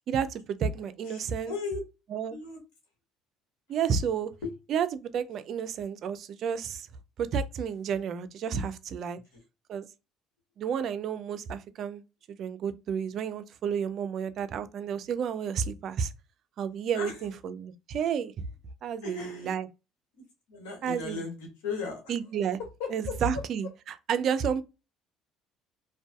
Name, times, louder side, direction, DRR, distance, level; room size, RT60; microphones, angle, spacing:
voice 1, 0.1-1.5 2.1-2.4 3.7-4.3 4.7-6.9 7.2-9.2 9.7-9.9 10.6-12.0 12.3-16.1 16.6-18.4 18.8-19.7 20.8-21.2 22.1-22.6 22.9-23.7 24.1-24.6, right 7 dB, 55° right, 0.4 m, -31 dB
voice 2, 1.0-1.8 2.3-2.6 4.4-4.5 9.3-9.4 16.9-17.3 19.0-19.5 20.1-20.2 20.5-22.1 22.6-23.4, left 5 dB, 85° left, 1.2 m, -37 dB
2.6 x 2.2 x 2.3 m
supercardioid pair, 80°, 0 cm